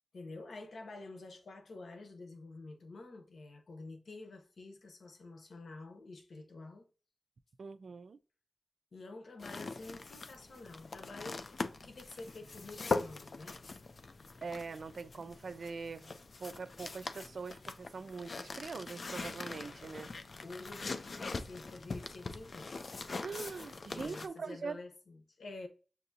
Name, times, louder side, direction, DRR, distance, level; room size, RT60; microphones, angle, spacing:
voice 1, 0.1-6.9 8.9-11.5 11.8-13.8 20.4-22.9 23.9-25.7, left 3 dB, 85° left, 0.9 m, -49 dB
voice 2, 7.6-8.2 14.4-20.1 23.2-24.8, right 4 dB, 75° right, 0.4 m, -43 dB
sound 1, 9.4-24.3, left 3 dB, 60° left, 0.4 m, -42 dB
6.8 x 2.7 x 2.6 m
wide cardioid pair, 90°, 0 cm